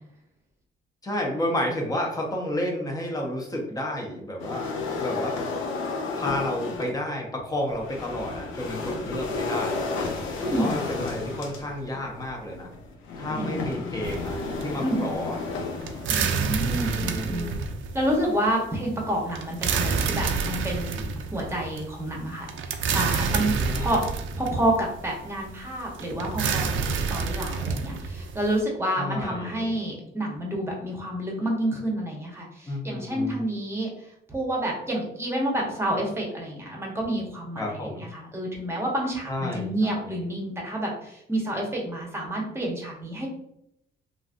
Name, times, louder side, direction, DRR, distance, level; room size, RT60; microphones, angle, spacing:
voice 1, 1.0-4.7 5.0-5.4 6.1-9.9 10.5-12.7 13.2-15.4 16.6-17.7 23.5-23.9 29.0-29.7 32.7-33.4 37.6-38.1 39.3-40.2, left 1 dB, 20° left, -1 dB, 0.8 m, -31 dB
sound 1, 4.4-7.0 7.7-16.5, left 3 dB, 80° left, 0.6 m, -32 dB
voice 2, 10.4-10.8 13.3-13.6 14.8-15.1 16.1-17.5 17.9-21.0 21.3-24.0 24.4-26.7 27.1-33.9 34.3-43.3, right 1 dB, 15° right, -1 dB, 1.0 m, -29 dB
sound 2, 14.0-28.6, right 5 dB, 80° right, 0.4 m, -29 dB
3.0 x 2.5 x 2.5 m, 0.77 s
cardioid pair, 90°, 20 cm